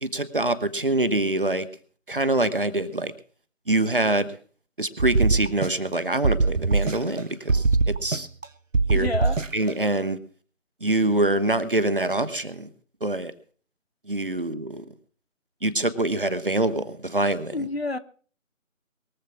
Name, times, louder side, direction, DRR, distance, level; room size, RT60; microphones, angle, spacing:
voice 1, 0.0-1.7 2.1-3.1 3.7-4.4 4.8-8.3 8.9-9.1 9.5-10.2 10.8-12.7 13.0-13.3 14.1-14.8 15.6-17.7, right 2 dB, 40° right, 1.2 m, -25 dB
sound 1, 5.0-6.0 6.2-7.2 7.5-8.5 8.7-9.7, right 3 dB, 70° right, 0.9 m, -22 dB
voice 2, 8.9-9.4 17.5-18.0, left 2 dB, 50° left, 1.0 m, -28 dB
22.5 x 7.5 x 5.9 m
figure-of-eight pair, 165°, 41 cm